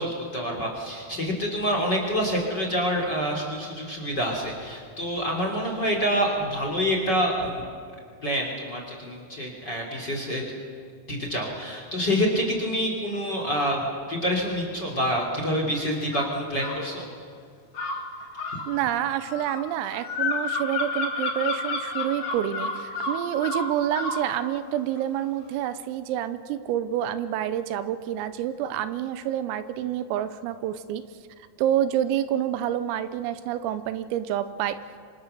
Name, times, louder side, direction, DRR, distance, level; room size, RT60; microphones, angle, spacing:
voice 1, 0.0-7.7 8.2-10.4 11.1-17.0, equal, 25° left, 1 dB, 2.7 m, -27 dB
sound 1, 16.1-16.8 17.7-24.3, left 3 dB, 45° left, 1.9 m, -30 dB
voice 2, 18.7-31.0 31.6-34.8, right 11 dB, 85° right, 12 dB, 3.5 m, -28 dB
26.5 x 25.5 x 6.8 m, 2.2 s
omnidirectional pair, 6.0 m